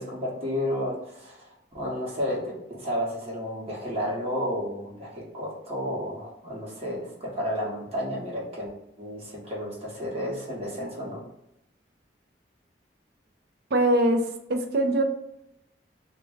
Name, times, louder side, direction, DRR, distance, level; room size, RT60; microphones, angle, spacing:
voice 1, 0.0-1.5 1.7-8.7 9.0-11.2, equal, 35° right, -4 dB, 1.0 m, -32 dB
voice 2, 13.7-15.0, right 1 dB, 60° right, 5 dB, 0.5 m, -23 dB
3.4 x 2.1 x 3.4 m, 0.80 s
head